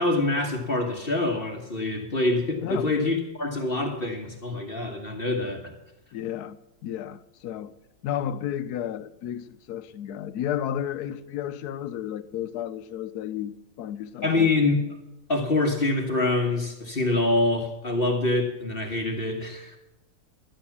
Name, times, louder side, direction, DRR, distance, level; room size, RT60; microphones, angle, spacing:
voice 1, 0.0-5.7 14.2-14.8 15.3-19.8, left 2 dB, 35° left, 1.4 m, -25 dB
voice 2, 6.1-7.7 8.0-14.5, left 10 dB, 70° left, 1.1 m, -32 dB
11.5 x 10.5 x 7.1 m
omnidirectional pair, 1.9 m